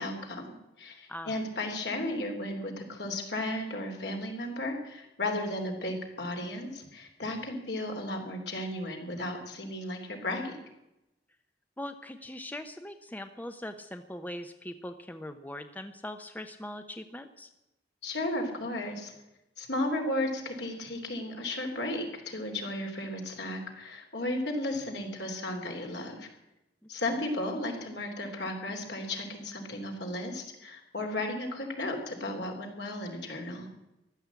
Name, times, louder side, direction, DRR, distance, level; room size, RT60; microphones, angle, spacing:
voice 1, 0.0-10.6 18.0-19.1 19.6-26.3 26.9-33.7, left 1 dB, 70° left, 3 dB, 3.3 m, -34 dB
voice 2, 11.8-17.5, left 1 dB, 10° left, 8 dB, 0.7 m, -41 dB
14.5 x 12.0 x 8.3 m, 0.92 s
head